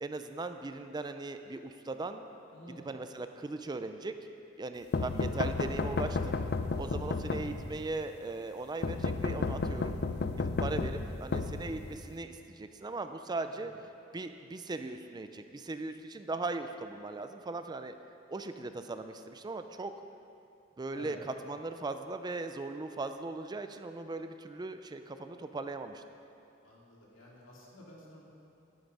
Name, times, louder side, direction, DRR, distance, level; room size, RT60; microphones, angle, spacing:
voice 1, 0.0-2.2 2.8-4.1 4.6-6.4 6.8-10.0 10.4-13.7 14.1-17.9 18.3-19.9 20.8-26.0, right 3 dB, 20° right, 8 dB, 0.4 m, -39 dB
voice 2, 2.5-2.9 13.4-13.6 20.9-21.2 26.6-28.2, left 1 dB, 85° left, -4 dB, 2.6 m, -52 dB
sound 1, 4.9-7.9 8.8-12.2, left 3 dB, 55° left, 0.5 m, -33 dB
11.0 x 9.4 x 5.4 m, 2.6 s
head